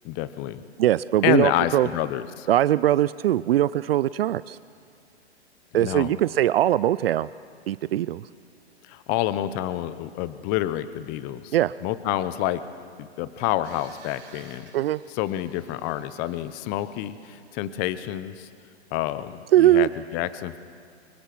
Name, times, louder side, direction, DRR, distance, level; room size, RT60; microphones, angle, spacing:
voice 1, 0.0-0.6 1.2-2.5 5.8-6.1 8.8-12.6 13.0-14.7 15.1-18.5 18.9-20.6, left 13 dB, 25° left, 14 dB, 0.8 m, -28 dB
voice 2, 0.8-1.9 2.5-4.6 5.7-7.3 7.7-8.3 11.5-11.7 14.7-15.0 19.5-19.9, right 13 dB, 60° right, 17 dB, 0.5 m, -21 dB
sound 1, 13.6-17.4, right 6 dB, 35° right, 3.5 m, -54 dB
24.5 x 22.0 x 6.0 m, 2.1 s
hypercardioid pair, 130°, 34 cm